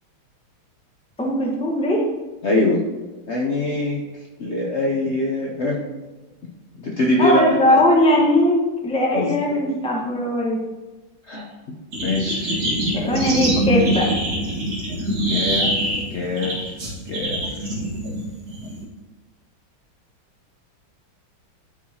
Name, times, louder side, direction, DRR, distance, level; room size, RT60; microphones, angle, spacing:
voice 1, 1.2-2.0 7.2-10.6 12.9-14.5, left 1 dB, 5° left, -2 dB, 0.7 m, -19 dB
voice 2, 2.4-2.8 3.3-4.0 4.4-5.8 6.8-7.4 7.7-7.8 9.1-9.4 11.3-11.5 12.0-12.6 12.9-13.1 15.3-16.8 17.1-17.7, left 2 dB, 80° left, -1 dB, 0.6 m, -23 dB
sound 1, 11.9-18.8, right 1 dB, 45° right, 2.2 m, -24 dB
11.5 x 4.7 x 2.8 m, 1.2 s
omnidirectional pair, 2.3 m